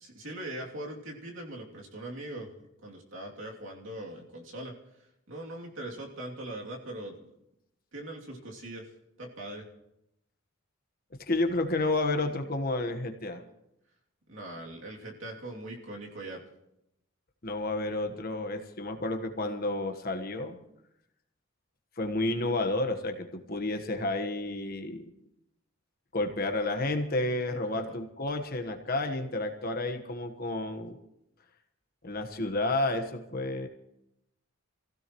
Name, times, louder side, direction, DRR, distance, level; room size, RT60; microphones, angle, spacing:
voice 1, 0.0-4.7 5.3-7.2 7.9-8.9 9.2-9.7 14.3-16.4 27.7-28.0, right 1 dB, 60° right, -2 dB, 2.8 m, -41 dB
voice 2, 11.3-13.4 17.4-20.6 22.0-25.0 26.1-31.0 32.0-33.7, left 2 dB, 45° left, 5 dB, 1.3 m, -31 dB
27.0 x 16.0 x 3.1 m, 0.85 s
head